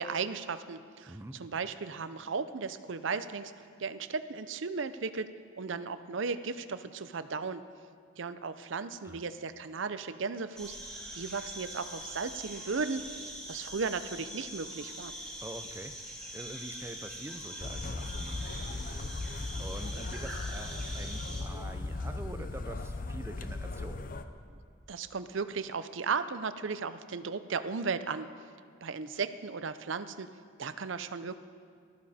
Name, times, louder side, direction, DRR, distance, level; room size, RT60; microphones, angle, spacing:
voice 1, 0.0-3.5 3.8-7.6 8.2-10.8 11.1-15.1 24.5-24.6 24.9-28.3 28.8-30.3 30.6-31.4, right 5 dB, 65° right, 12 dB, 0.6 m, -35 dB
voice 2, 1.1-1.4 9.0-9.2 15.4-15.9 16.3-19.0 19.6-24.0, right 1 dB, 10° right, 8 dB, 0.6 m, -45 dB
sound 1, 10.5-21.4, equal, 5° left, 2.3 m, -43 dB
sound 2, 17.6-24.3, left 2 dB, 40° left, 0.6 m, -38 dB
19.0 x 13.5 x 4.3 m, 2.2 s
head